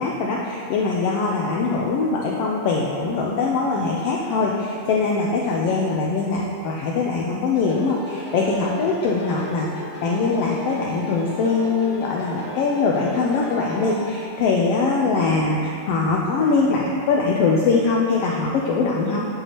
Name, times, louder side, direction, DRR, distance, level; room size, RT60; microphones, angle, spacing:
voice 1, 0.0-9.7 10.0-19.3, left 4 dB, 80° left, -3 dB, 1.4 m, -22 dB
sound 1, 7.5-14.2, equal, 50° left, 1.3 m, -35 dB
9.8 x 8.0 x 2.9 m, 2.7 s
omnidirectional pair, 3.4 m